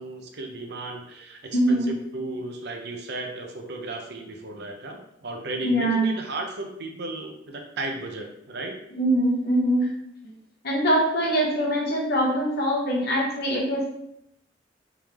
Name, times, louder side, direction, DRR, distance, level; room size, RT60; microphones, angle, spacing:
voice 1, 0.0-8.8, right 2 dB, 65° right, 3 dB, 0.6 m, -35 dB
voice 2, 1.5-1.9 5.6-6.1 9.0-9.9 10.2-10.3 10.6-13.9, right 1 dB, 60° left, -2 dB, 1.2 m, -23 dB
3.7 x 3.3 x 3.0 m, 0.76 s
head